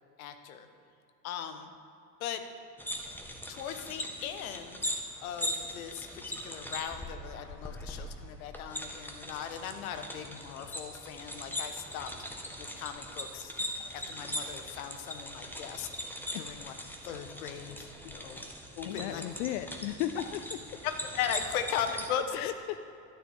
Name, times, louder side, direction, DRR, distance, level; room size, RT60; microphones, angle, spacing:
voice 1, 0.2-0.7 1.2-1.7 2.2-2.4 3.5-4.9 5.2-12.1 12.6-13.5 13.9-15.9 16.3-16.7 17.0-18.4 18.8-19.2 21.1-22.5, left 8 dB, 60° left, 8 dB, 1.4 m, -38 dB
sound 1, 2.8-22.1, equal, 5° left, 1.8 m, -40 dB
voice 2, 18.8-20.4 22.3-22.8, left 12 dB, 45° left, 11 dB, 0.6 m, -35 dB
12.5 x 12.0 x 7.0 m, 2.7 s
figure-of-eight pair, 75°, 48 cm